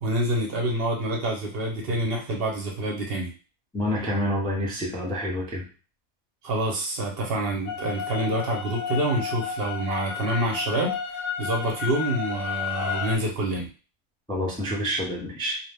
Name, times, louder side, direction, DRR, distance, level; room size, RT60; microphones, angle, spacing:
voice 1, 0.0-3.3 6.4-13.7, right 1 dB, 60° right, 0 dB, 0.8 m, -27 dB
voice 2, 3.7-5.6 14.3-15.6, equal, 5° left, -3 dB, 0.3 m, -28 dB
sound 1, 7.7-13.2, left 7 dB, 60° left, 0.7 m, -32 dB
2.5 x 2.1 x 3.3 m, 0.36 s
omnidirectional pair, 1.3 m